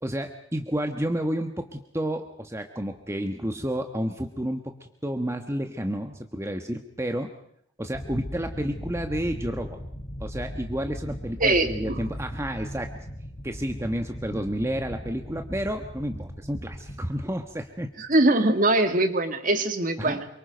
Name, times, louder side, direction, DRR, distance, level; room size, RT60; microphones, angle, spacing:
voice 1, 0.0-7.3 7.8-9.8 10.2-12.9 13.4-17.9 20.0-20.2, equal, 15° right, 5 dB, 1.3 m, -30 dB
sound 1, 7.9-18.0, equal, 35° left, 4.0 m, -39 dB
voice 2, 11.4-12.0 18.0-20.3, right 2 dB, 45° right, 8 dB, 2.0 m, -22 dB
27.5 x 24.5 x 5.2 m, 0.71 s
head